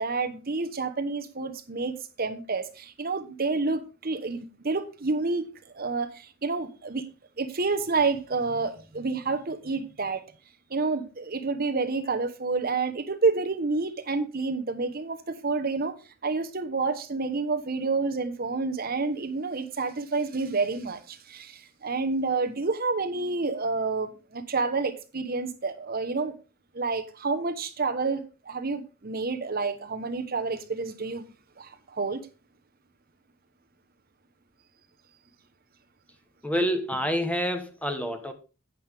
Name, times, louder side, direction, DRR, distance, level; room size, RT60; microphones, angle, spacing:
voice 1, 0.0-5.5 5.7-7.1 7.4-10.2 10.7-16.0 16.2-26.3 26.7-31.3 31.6-32.2, right 3 dB, 45° right, 1.0 m, -29 dB
voice 2, 36.4-38.3, equal, 5° left, 1.1 m, -27 dB
9.3 x 8.4 x 3.5 m
head